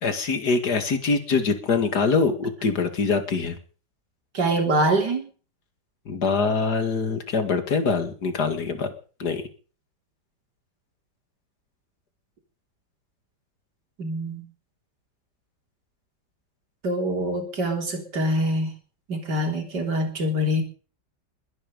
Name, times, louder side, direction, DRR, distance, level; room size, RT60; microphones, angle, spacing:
voice 1, 0.0-3.6 6.1-8.9 9.2-9.4, left 4 dB, 70° left, 8 dB, 2.6 m, -24 dB
voice 2, 4.3-5.3 14.0-14.5 16.8-18.7 19.1-20.6, right 1 dB, 80° right, 4 dB, 4.0 m, -24 dB
21.5 x 11.0 x 5.3 m, 0.40 s
omnidirectional pair, 1.8 m